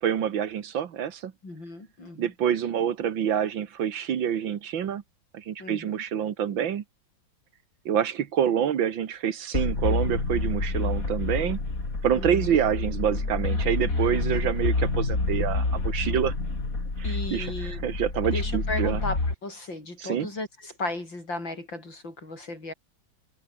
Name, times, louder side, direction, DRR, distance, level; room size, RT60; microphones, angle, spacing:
voice 1, 0.0-1.3 2.2-5.0 5.3-6.8 7.9-11.6 12.0-16.3 17.0-19.0 20.0-20.3, right 9 dB, 85° right, 2.2 m, -27 dB
voice 2, 1.4-2.3 5.6-5.9 12.1-12.5 17.0-17.8 18.3-22.7, left 2 dB, 75° left, 8.7 m, -35 dB
sound 1, 9.5-19.3, left 3 dB, 45° left, 4.7 m, -28 dB
omnidirectional pair, 2.1 m